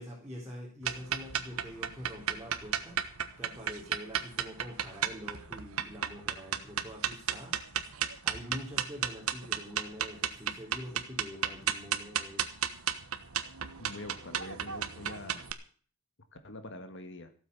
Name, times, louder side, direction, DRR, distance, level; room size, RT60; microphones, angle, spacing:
voice 1, 0.0-3.0 3.4-7.5 8.2-12.5, equal, 10° right, -4 dB, 4.0 m, -45 dB
sound 1, 0.8-15.5, right 9 dB, 75° right, 1.3 m, -34 dB
voice 2, 13.8-15.5 16.4-17.3, left 2 dB, 55° left, 9 dB, 1.8 m, -45 dB
15.5 x 8.7 x 7.0 m, 0.43 s
head